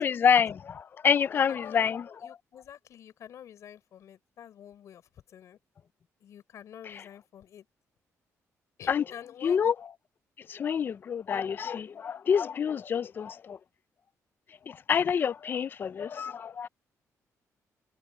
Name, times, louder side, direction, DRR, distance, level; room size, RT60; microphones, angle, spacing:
voice 1, 0.0-2.0 8.9-9.0 9.4-9.7 10.5-13.6 14.7-16.7, left 7 dB, 40° left, 0.4 m, -27 dB
voice 2, 2.2-5.0 5.3-5.6 6.2-7.7 8.8-9.7, left 10 dB, 65° left, 4.3 m, -48 dB
cardioid pair, 165°, 6 cm